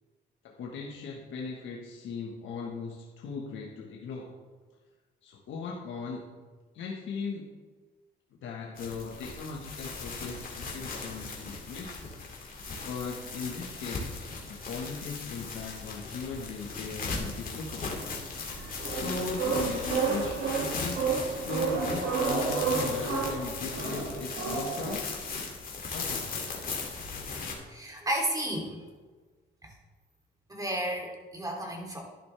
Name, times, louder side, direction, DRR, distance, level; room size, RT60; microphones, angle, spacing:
voice 1, 0.4-4.3 5.2-6.3 6.7-7.5 8.4-12.2 12.9-17.9 18.9-25.1 25.9-26.3, left 4 dB, 75° left, -1 dB, 1.4 m, -38 dB
sound 1, 8.8-27.5, left 4 dB, 45° left, 2.7 m, -38 dB
sound 2, 18.5-25.0, right 5 dB, 75° right, 2.2 m, -31 dB
voice 2, 27.6-28.9 29.6-29.7 30.5-32.0, right 1 dB, 20° right, 0 dB, 3.0 m, -33 dB
11.0 x 11.0 x 3.4 m, 1.4 s
cardioid pair, 90°, 20 cm